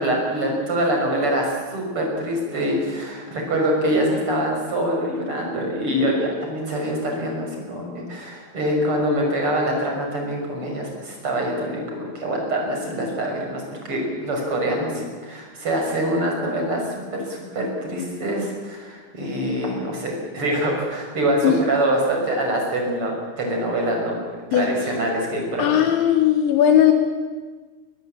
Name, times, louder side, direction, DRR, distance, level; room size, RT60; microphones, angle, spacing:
voice 1, 0.0-24.2 24.5-25.9, right 1 dB, 30° right, 1 dB, 6.3 m, -24 dB
voice 2, 25.6-26.9, left 10 dB, 75° left, 5 dB, 3.6 m, -17 dB
22.0 x 20.5 x 8.6 m, 1.4 s
omnidirectional pair, 5.4 m